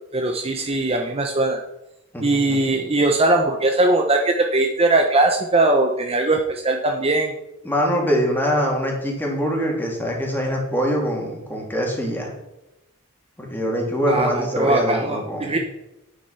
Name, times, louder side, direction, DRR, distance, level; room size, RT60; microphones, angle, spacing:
voice 1, 0.1-1.6 2.2-7.3 14.1-15.6, right 2 dB, 25° right, 3 dB, 1.0 m, -20 dB
voice 2, 2.1-2.7 7.6-12.3 13.4-15.6, equal, 10° left, -1 dB, 3.0 m, -23 dB
9.9 x 9.2 x 5.7 m, 0.92 s
head